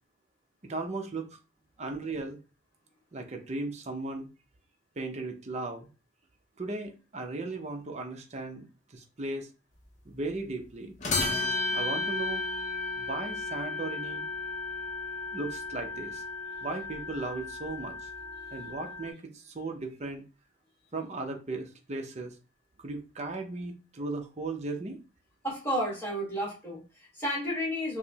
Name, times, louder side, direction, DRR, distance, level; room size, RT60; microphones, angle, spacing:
voice 1, 0.6-1.3 1.8-2.4 3.1-4.3 5.0-5.9 6.6-8.7 8.9-9.5 10.1-10.9 11.7-12.4 13.0-14.3 15.3-16.2 16.6-17.9 18.5-20.2 20.9-22.3 22.8-25.0, right 2 dB, 35° right, 3 dB, 0.6 m, -36 dB
sound 1, 11.0-19.1, left 3 dB, 40° left, 0.7 m, -34 dB
voice 2, 25.4-28.0, equal, 10° left, -6 dB, 1.4 m, -32 dB
4.7 x 2.0 x 2.8 m, 0.31 s
head